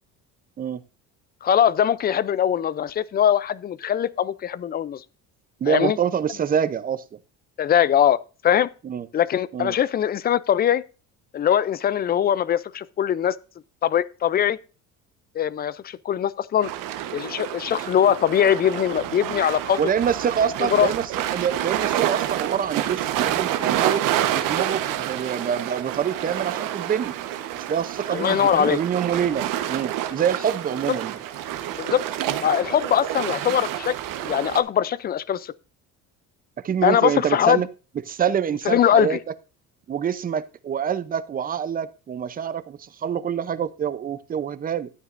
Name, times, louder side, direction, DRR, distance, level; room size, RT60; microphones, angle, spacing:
voice 1, 1.4-5.0 5.7-6.0 7.6-8.2 8.4-8.7 9.1-10.8 11.3-13.3 13.8-14.6 15.3-16.7 17.1-19.8 20.7-20.9 28.1-28.8 31.7-32.0 32.4-34.0 34.2-35.5 36.8-37.6 38.7-39.2, left 9 dB, 30° left, 0.4 m, -21 dB
voice 2, 5.6-7.0 8.8-9.1 9.5-9.8 19.8-24.1 24.3-27.1 27.5-31.2 36.6-37.7 38.1-39.2 39.9-44.9, right 8 dB, 25° right, 0.6 m, -26 dB
sound 1, 16.6-34.6, right 12 dB, 70° right, 1.1 m, -28 dB
12.5 x 9.3 x 2.5 m
cardioid pair, 135°, 33 cm